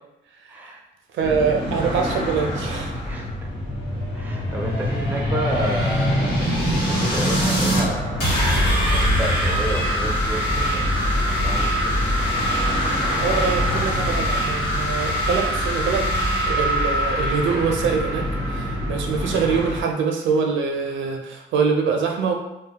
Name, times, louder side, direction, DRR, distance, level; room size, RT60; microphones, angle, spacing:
voice 1, 0.5-0.8 1.3-2.0 3.1-3.5 4.1-11.1 11.4-12.0, right 1 dB, 10° right, 0 dB, 0.4 m, -32 dB
voice 2, 1.1-2.9 13.2-16.1 16.5-22.3, right 5 dB, 70° right, 2 dB, 0.5 m, -24 dB
sound 1, 1.2-19.8, left 1 dB, 30° left, 1.0 m, -27 dB
sound 2, 3.3-7.8 8.2-19.8, equal, 75° left, 1.1 m, -24 dB
2.2 x 2.1 x 2.8 m, 0.90 s
cardioid pair, 90°, 20 cm